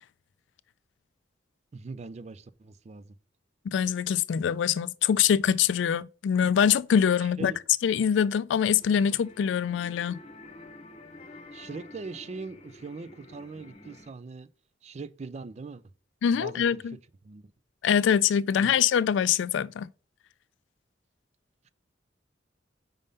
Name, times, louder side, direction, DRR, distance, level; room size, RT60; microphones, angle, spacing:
voice 1, 1.7-3.2 7.2-7.6 11.5-14.5 14.8-15.8 16.3-17.0 17.2-17.4 18.5-18.8 21.6-21.7, right 4 dB, 35° right, 0.4 m, -41 dB
voice 2, 3.7-7.5 7.8-10.2 16.2-17.0 17.8-19.9, left 8 dB, 70° left, 0.3 m, -24 dB
sound 1, 8.8-14.1, left 2 dB, 35° left, 0.9 m, -49 dB
5.3 x 3.5 x 5.3 m
head